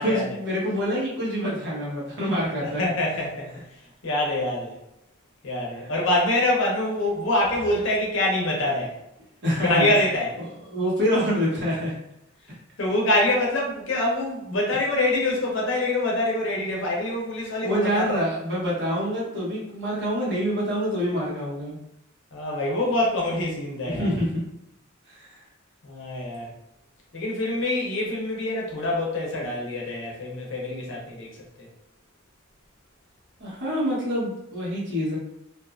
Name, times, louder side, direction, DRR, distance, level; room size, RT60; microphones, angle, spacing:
voice 1, 0.0-2.8 9.4-9.9 10.7-12.0 17.6-21.8 23.9-24.4 25.1-25.4 33.4-35.2, equal, 55° right, -6 dB, 1.2 m, -26 dB
voice 2, 2.6-3.5 4.0-4.8 5.4-9.0 9.6-10.4 12.8-18.2 22.3-24.1 25.8-26.5 27.1-31.7, left 1 dB, 65° left, -2 dB, 0.7 m, -25 dB
2.6 x 2.4 x 2.4 m, 0.83 s
head